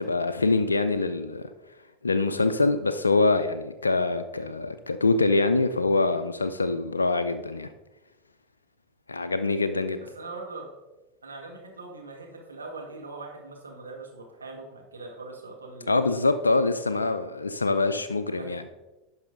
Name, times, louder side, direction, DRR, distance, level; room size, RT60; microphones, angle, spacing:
voice 1, 0.0-1.5 2.0-7.7 9.1-10.0 15.9-18.6, left 3 dB, 85° left, 8 dB, 0.4 m, -24 dB
voice 2, 10.0-10.7 11.2-16.2 16.9-17.1 18.4-18.5, right 3 dB, 85° right, 0 dB, 1.6 m, -41 dB
10.5 x 5.4 x 3.8 m, 1.1 s
figure-of-eight pair, 80°, 0 cm